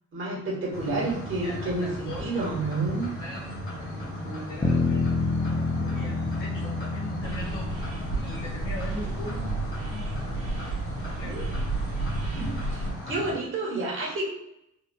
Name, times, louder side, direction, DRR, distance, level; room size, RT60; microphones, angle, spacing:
voice 1, 0.1-3.1 11.2-11.5 12.3-12.4 13.1-14.3, right 2 dB, 40° right, -3 dB, 1.2 m, -29 dB
sound 1, 0.7-13.3, left 1 dB, 45° left, 1.4 m, -36 dB
voice 2, 1.4-2.4 3.2-7.7 8.1-9.6 9.9-10.5 11.0-11.4 12.2-12.7, left 1 dB, 80° left, -6 dB, 1.5 m, -40 dB
Bass guitar, 4.6-9.0, left 2 dB, 10° left, 0.3 m, -28 dB
sound 2, 7.2-12.9, right 3 dB, 60° right, 0.8 m, -33 dB
3.8 x 2.3 x 2.2 m, 0.82 s
cardioid pair, 90°, 30 cm